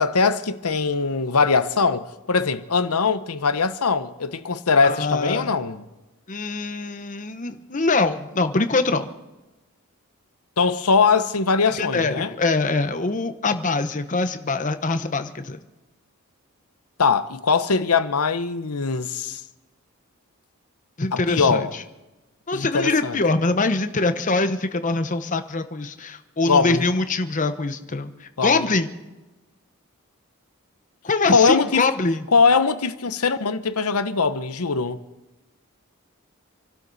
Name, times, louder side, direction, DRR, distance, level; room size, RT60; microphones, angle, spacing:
voice 1, 0.0-5.8 10.6-12.3 17.0-19.4 21.1-21.7 22.5-23.2 26.5-26.9 28.4-28.7 31.3-31.9 32.3-35.0, left 4 dB, 90° left, 1.0 m, -21 dB
voice 2, 4.8-5.5 6.3-9.1 11.7-15.6 21.0-21.8 22.5-28.9 31.0-32.2, left 3 dB, 35° left, 1.0 m, -23 dB
28.0 x 12.5 x 4.1 m
head